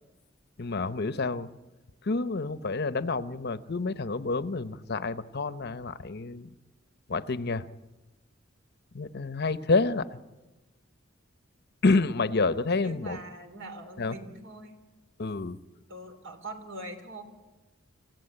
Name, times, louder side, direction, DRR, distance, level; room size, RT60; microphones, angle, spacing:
voice 1, 0.6-1.5 2.0-6.5 7.1-7.7 8.9-10.2 11.8-13.2 14.0-14.2 15.2-15.6, left 3 dB, 55° left, 12 dB, 0.8 m, -28 dB
voice 2, 12.8-14.8 15.9-17.2, right 2 dB, 65° right, 6 dB, 3.2 m, -42 dB
26.0 x 16.0 x 8.8 m, 1.2 s
head